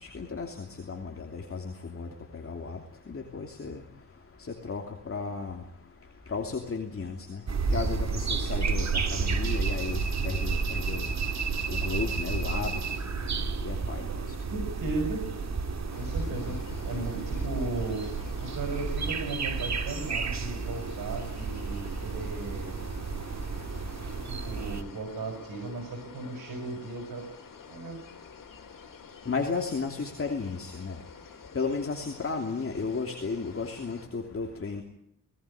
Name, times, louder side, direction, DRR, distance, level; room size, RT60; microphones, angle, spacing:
voice 1, 0.0-2.1 2.3-2.8 3.1-3.8 4.6-5.6 6.3-7.4 7.7-11.1 11.7-12.8 13.6-14.1 29.3-31.0 31.5-34.8, left 4 dB, 40° left, 3 dB, 2.9 m, -34 dB
sound 1, 7.5-24.8, right 4 dB, 55° right, 2.2 m, -31 dB
voice 2, 14.5-15.3 16.0-22.8 24.0-27.3 27.7-28.0, right 3 dB, 85° right, 3 dB, 5.6 m, -36 dB
sound 2, 15.9-34.1, left 6 dB, 75° left, 3.5 m, -50 dB
20.0 x 18.5 x 9.9 m, 0.69 s
cardioid pair, 95°, 33 cm